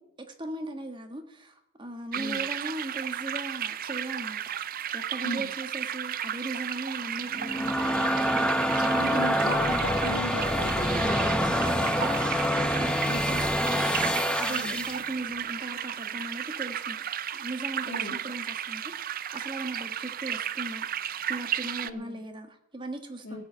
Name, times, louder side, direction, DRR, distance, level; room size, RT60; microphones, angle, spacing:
voice 1, 0.3-8.1 8.6-9.4 11.0-12.2 12.5-17.0 17.3-23.4, right 1 dB, 20° right, 1.5 m, -38 dB
voice 2, 2.1-2.5 5.2-5.5 9.0-11.0 13.1-13.4 14.5-14.7 17.8-18.2 21.8-22.2 23.2-23.4, left 1 dB, 55° left, 2.1 m, -36 dB
sound 1, 2.1-21.9, right 10 dB, 40° right, 0.4 m, -34 dB
sound 2, 7.3-15.0, equal, 5° left, 0.8 m, -26 dB
16.0 x 8.0 x 6.8 m
head